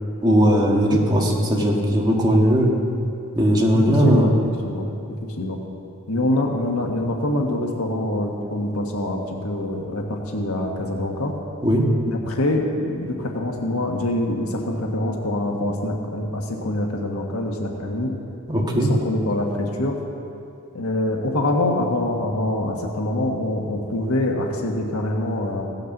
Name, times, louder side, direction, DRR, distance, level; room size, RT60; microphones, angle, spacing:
voice 1, 0.2-2.7 3.4-4.3 11.6-11.9 18.5-18.9, equal, 20° right, -2 dB, 1.7 m, -18 dB
voice 2, 3.7-5.6 6.1-11.3 12.1-18.1 18.7-20.0 20.7-25.6, left 1 dB, 90° left, 1 dB, 1.4 m, -25 dB
17.0 x 6.6 x 6.6 m, 2.6 s
head